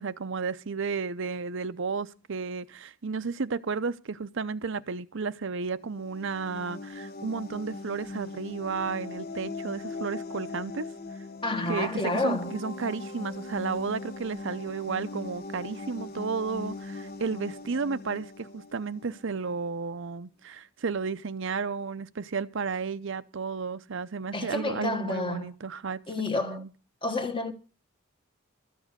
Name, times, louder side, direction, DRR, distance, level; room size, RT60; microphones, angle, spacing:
voice 1, 0.0-10.9 11.7-26.0 26.3-26.7, right 5 dB, 60° right, 0.6 m, -33 dB
sound 1, 5.8-19.4, left 3 dB, 45° left, 1.0 m, -40 dB
voice 2, 11.4-12.5 24.3-25.5 26.1-26.6 27.0-27.5, left 2 dB, 25° left, 1.3 m, -30 dB
13.5 x 7.3 x 8.2 m
head